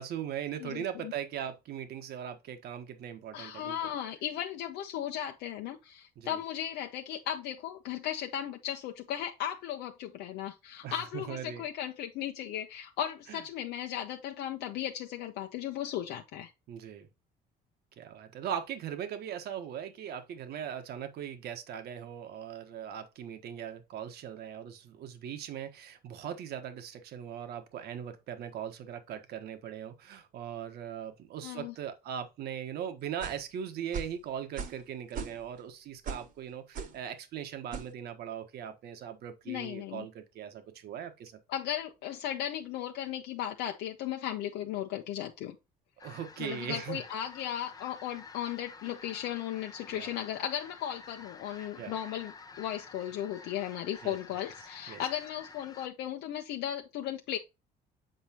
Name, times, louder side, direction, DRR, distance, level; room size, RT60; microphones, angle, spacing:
voice 1, 0.0-3.8 6.2-6.4 10.8-11.6 13.3-13.4 16.7-17.1 18.0-41.4 46.0-47.0 49.9-50.1 51.8-51.9 54.0-54.2 54.9-55.0, right 9 dB, 70° right, 1.3 m, -39 dB
voice 2, 0.6-1.1 3.3-16.5 31.4-31.7 39.5-40.1 41.5-45.5 46.4-57.4, left 11 dB, 85° left, 0.8 m, -36 dB
sound 1, 33.2-33.5 33.9-34.2 34.6-34.8 35.1-35.6 36.0-36.3 36.7-37.0 37.7-37.9, right 6 dB, 55° right, 1.3 m, -38 dB
sound 2, 46.0-55.9, left 4 dB, 20° left, 0.7 m, -50 dB
8.0 x 4.6 x 2.9 m
cardioid pair, 110°, 17 cm